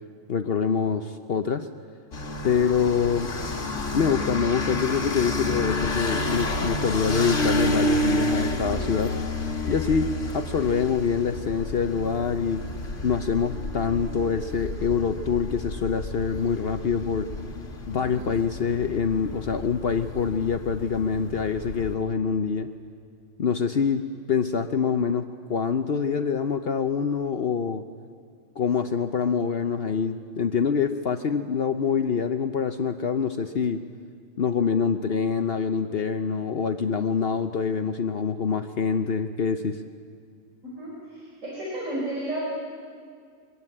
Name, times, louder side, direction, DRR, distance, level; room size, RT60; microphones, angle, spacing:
voice 1, 0.3-1.7 2.4-3.3 3.9-9.1 9.7-12.6 13.0-17.3 17.9-22.7 23.4-27.8 28.6-33.8 34.4-39.8, left 6 dB, 55° left, 8 dB, 0.9 m, -25 dB
sound 1, 2.1-21.9, left 1 dB, 75° left, 2.2 m, -30 dB
voice 2, 17.9-18.3 40.8-42.4, right 1 dB, 80° right, -6 dB, 5.4 m, -33 dB
23.0 x 16.5 x 9.7 m, 2.2 s
omnidirectional pair, 1.3 m